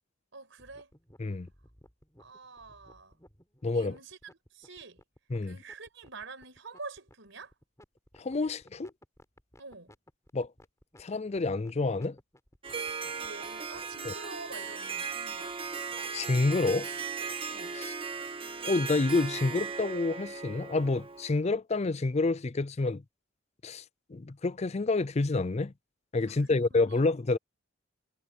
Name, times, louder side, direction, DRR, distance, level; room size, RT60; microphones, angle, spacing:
voice 1, 0.3-1.0 2.2-3.2 3.7-4.2 4.5-5.0 5.4-7.6 9.6-9.9 13.1-15.6 17.5-17.8 26.3-27.0, right 3 dB, 65° right, 5.5 m, -47 dB
sound 1, 0.6-14.0, left 1 dB, 15° left, 4.5 m, -57 dB
voice 2, 3.6-3.9 5.3-5.6 8.2-8.9 10.3-10.5 11.0-12.2 14.1-14.2 16.1-16.9 17.7-17.9 18.7-23.0 23.6-23.8 24.1-25.7 26.1-27.4, left 3 dB, 30° left, 0.5 m, -28 dB
Harp, 12.6-21.4, right 5 dB, 25° right, 1.7 m, -37 dB
head